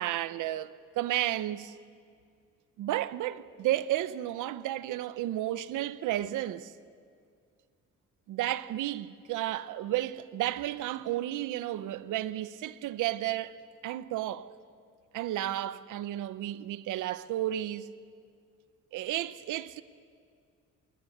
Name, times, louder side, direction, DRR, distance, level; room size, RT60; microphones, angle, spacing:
voice 1, 0.0-1.7 2.8-6.7 8.3-13.6 13.8-14.5 15.1-17.9 18.9-19.8, right 14 dB, 85° right, 1.0 m, -32 dB
28.0 x 23.5 x 8.1 m
cardioid pair, 90°, 30 cm